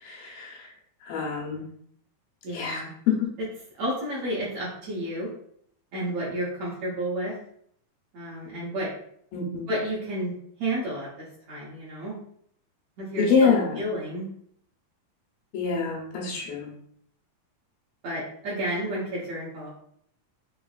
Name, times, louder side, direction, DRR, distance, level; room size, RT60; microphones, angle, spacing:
voice 1, 0.0-0.7 1.0-1.7 2.5-3.3 9.3-9.6 13.2-13.8 15.5-16.7, left 5 dB, 90° left, -2 dB, 2.7 m, -26 dB
voice 2, 2.4-2.9 3.4-3.5 3.8-5.3 5.9-7.3 8.1-8.9 9.7-10.3 10.6-12.1 13.0-14.3 15.8-16.4 18.0-19.7, right 1 dB, 70° right, -6 dB, 1.6 m, -31 dB
5.9 x 2.5 x 2.4 m, 0.67 s
omnidirectional pair, 4.0 m